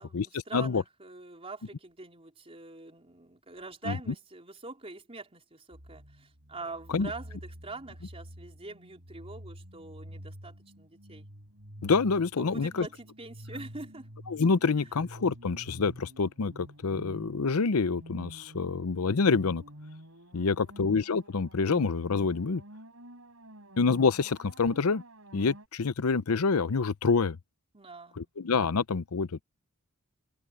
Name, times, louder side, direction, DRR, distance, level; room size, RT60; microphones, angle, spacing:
voice 1, 0.0-11.3 12.4-14.1 14.8-14.9 20.3-20.7 27.7-28.3, right 3 dB, 25° right, 3.9 m, -44 dB
sound 1, 5.7-25.7, equal, 65° right, 7.9 m, -48 dB
voice 2, 11.8-12.9 14.3-19.6 20.3-22.6 23.8-25.0 25.3-27.4 28.2-29.4, left 4 dB, 80° left, 0.7 m, -27 dB
head